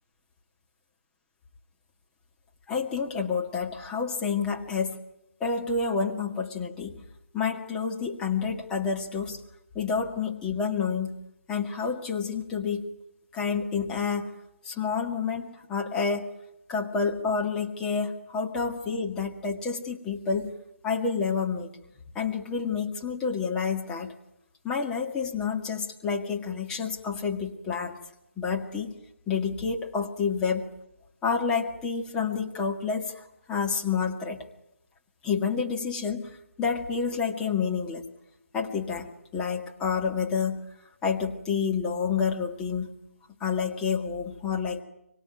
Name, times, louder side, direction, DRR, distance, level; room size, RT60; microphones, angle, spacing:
voice 1, 2.7-5.0 5.4-7.0 7.3-9.4 9.8-11.2 11.5-12.9 13.3-14.3 14.6-16.3 16.7-20.5 20.8-21.7 22.2-24.1 24.6-28.0 28.4-28.9 29.3-30.7 31.2-34.5 35.2-38.0 38.5-40.7 41.0-42.9 43.4-44.8, left 5 dB, 10° left, 1 dB, 1.9 m, -29 dB
25.0 x 24.0 x 9.1 m, 0.84 s
figure-of-eight pair, 155°, 8 cm